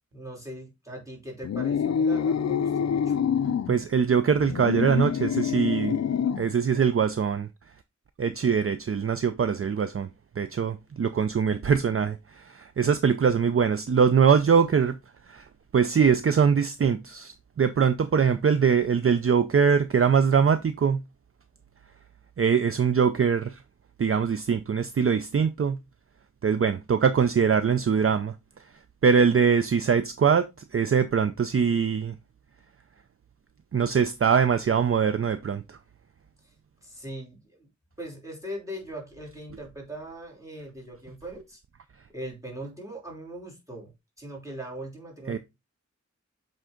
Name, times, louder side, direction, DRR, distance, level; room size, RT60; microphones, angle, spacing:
voice 1, 0.1-3.2 36.4-36.5 36.8-37.7 38.0-41.6 42.1-43.9 44.2-45.4, right 1 dB, 10° right, 3.0 m, -40 dB
sound 1, 1.4-3.7 4.3-6.5, left 7 dB, 65° left, 0.4 m, -26 dB
voice 2, 3.7-6.0 6.4-7.5 8.2-10.1 10.4-15.0 15.3-15.5 15.7-21.0 22.4-23.6 24.0-25.8 26.4-28.4 29.0-32.1 33.7-35.8 45.3-45.4, right 6 dB, 50° right, 0.5 m, -23 dB
7.5 x 3.8 x 3.7 m
wide cardioid pair, 80°, 30 cm